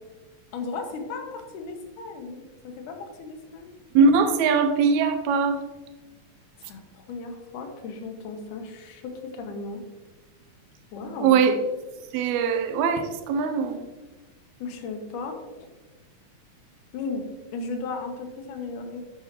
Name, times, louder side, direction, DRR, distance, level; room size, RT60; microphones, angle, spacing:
voice 1, 0.5-3.7 6.6-9.8 10.9-11.5 14.6-15.4 16.9-17.3 17.5-19.0, left 4 dB, 80° left, 4 dB, 2.5 m, -35 dB
voice 2, 3.9-5.6 11.2-11.6 12.1-13.8, right 5 dB, 75° right, 7 dB, 1.9 m, -21 dB
8.5 x 6.3 x 3.0 m, 1.2 s
omnidirectional pair, 3.6 m